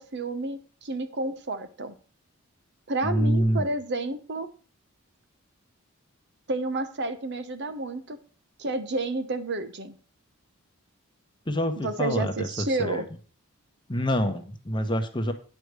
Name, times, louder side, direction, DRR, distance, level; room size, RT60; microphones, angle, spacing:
voice 1, 0.0-1.9 2.9-4.5 6.5-8.2 8.6-10.0 11.8-13.1, right 2 dB, 50° right, 10 dB, 0.9 m, -30 dB
voice 2, 3.0-3.7 11.5-13.0 13.9-15.3, equal, 20° left, 7 dB, 1.0 m, -26 dB
9.5 x 4.9 x 6.6 m, 0.39 s
head